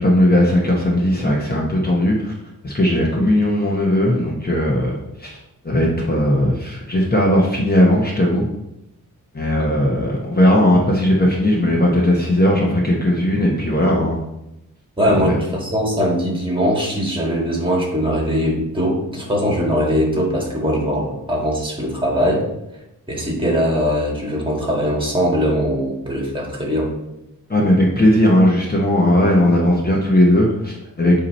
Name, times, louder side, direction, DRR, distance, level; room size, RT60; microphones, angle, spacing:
voice 1, 0.0-2.3 2.6-5.4 5.6-8.5 9.3-14.2 15.1-15.4 27.5-31.2, left 1 dB, 30° left, -2 dB, 0.9 m, -17 dB
voice 2, 15.0-22.5 23.1-26.9, equal, 15° right, -2 dB, 1.7 m, -21 dB
8.4 x 2.9 x 4.1 m, 0.87 s
wide cardioid pair, 135°, 34 cm